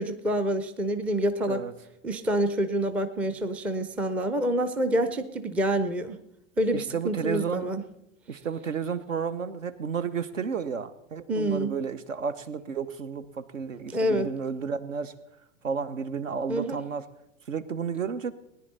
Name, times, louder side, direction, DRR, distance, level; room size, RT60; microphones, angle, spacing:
voice 1, 0.0-1.6 2.0-6.2 6.6-7.8 11.3-11.7 13.9-14.3 16.5-16.8, right 1 dB, 5° right, 9 dB, 0.4 m, -27 dB
voice 2, 6.7-7.7 8.3-15.1 15.6-17.1 17.5-18.3, right 6 dB, 75° right, 13 dB, 1.0 m, -32 dB
18.5 x 10.5 x 4.1 m, 0.82 s
figure-of-eight pair, 100°, 39 cm